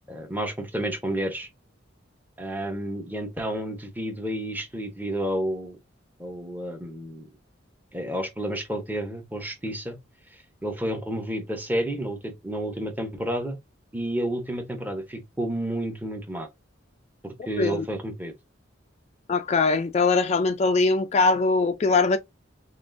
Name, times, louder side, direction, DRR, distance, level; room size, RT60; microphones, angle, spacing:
voice 1, 0.1-1.5 2.4-5.8 6.2-7.3 7.9-10.0 10.6-13.6 13.9-16.5 17.2-18.3, right 1 dB, 10° right, 0.7 m, -30 dB
voice 2, 19.3-22.2, left 3 dB, 35° left, 0.3 m, -21 dB
6.0 x 2.4 x 2.5 m
head